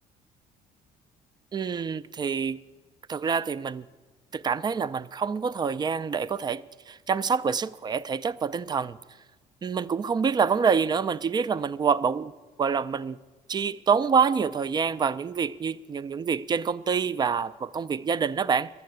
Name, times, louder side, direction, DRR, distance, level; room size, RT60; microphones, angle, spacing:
voice 1, 1.5-2.6 3.1-3.8 4.3-9.0 9.6-12.3 12.6-13.2 13.5-18.7, right 6 dB, 25° right, 0.4 m, -26 dB
12.0 x 8.5 x 7.9 m
cardioid pair, 110°, 17 cm